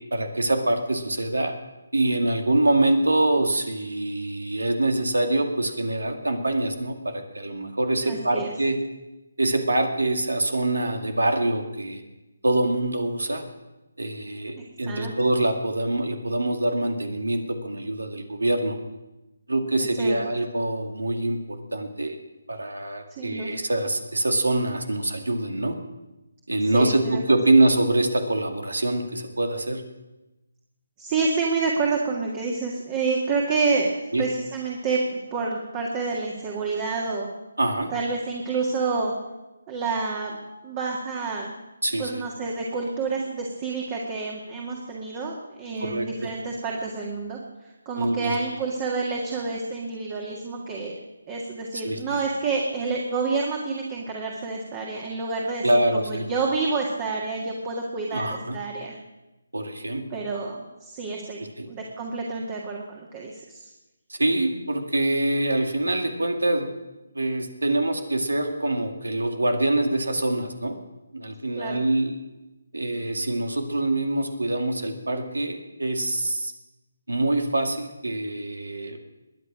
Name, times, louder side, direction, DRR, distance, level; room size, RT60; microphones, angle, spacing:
voice 1, 0.0-1.5 1.9-8.8 9.4-12.0 12.4-13.4 14.0-18.8 19.5-22.2 22.5-25.8 26.5-29.8 34.1-34.3 37.6-37.9 41.8-42.1 45.8-46.3 48.0-48.3 51.7-52.0 55.6-56.3 58.1-58.6 59.5-60.0 61.4-61.7 64.1-66.7 67.1-70.8 71.1-72.2 72.7-76.5 77.1-79.0, right 2 dB, 90° right, 5 dB, 2.2 m, -25 dB
voice 2, 8.0-8.5 14.6-15.1 19.8-20.4 23.1-23.5 26.7-27.2 31.0-37.3 37.9-39.1 39.7-40.4 40.6-41.5 42.0-50.9 51.3-59.0 60.1-61.4 61.7-63.7 71.6-71.8, right 4 dB, 25° right, -1 dB, 1.9 m, -28 dB
21.0 x 9.7 x 6.2 m, 1.0 s
figure-of-eight pair, 155°, 0 cm